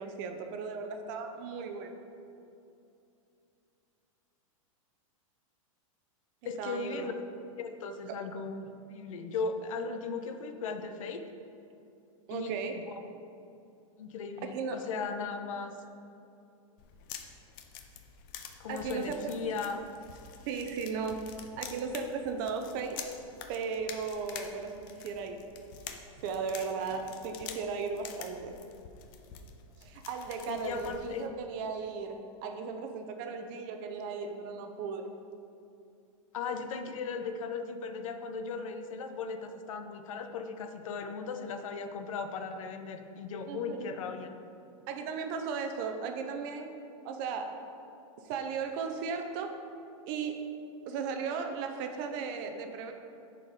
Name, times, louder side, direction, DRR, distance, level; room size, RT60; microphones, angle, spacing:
voice 1, 0.0-2.0 6.4-7.1 8.1-8.2 12.3-12.8 14.4-14.8 18.7-19.3 20.5-21.3 21.6-23.0 23.5-25.5 26.2-28.6 29.8-35.1 43.4-44.0 44.9-46.7 47.0-47.6 48.2-49.6 50.1-50.5 50.9-52.9, right 5 dB, 35° right, 5 dB, 0.7 m, -36 dB
voice 2, 6.4-7.1 7.6-11.2 12.3-12.5 14.0-15.7 18.6-19.8 30.5-31.3 36.3-44.3, left 4 dB, 70° left, 7 dB, 0.8 m, -37 dB
sound 1, 16.8-31.3, left 7 dB, 40° left, 0.6 m, -47 dB
10.5 x 4.5 x 4.8 m, 2.7 s
supercardioid pair, 165°, 18 cm